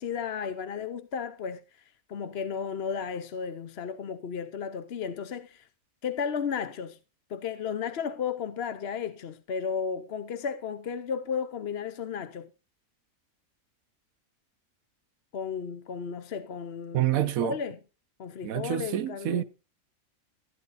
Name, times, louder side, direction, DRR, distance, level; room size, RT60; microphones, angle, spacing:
voice 1, 0.0-1.6 2.1-5.7 6.0-7.0 7.3-12.5 15.3-17.8 18.2-19.4, left 6 dB, 55° left, 0.9 m, -34 dB
voice 2, 16.9-17.6 18.4-19.4, right 12 dB, 80° right, 1.2 m, -27 dB
14.5 x 9.6 x 4.0 m
omnidirectional pair, 1.5 m